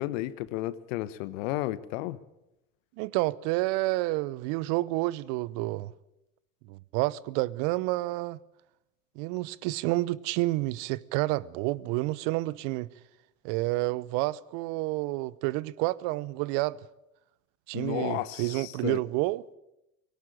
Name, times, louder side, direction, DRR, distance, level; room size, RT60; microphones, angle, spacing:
voice 1, 0.0-2.2 17.7-19.0, left 16 dB, 65° left, 1.2 m, -33 dB
voice 2, 3.0-5.9 6.7-8.4 9.2-12.9 13.4-16.8 17.7-19.4, right 20 dB, 60° right, 0.8 m, -29 dB
18.5 x 17.5 x 8.8 m
hypercardioid pair, 75°, 41 cm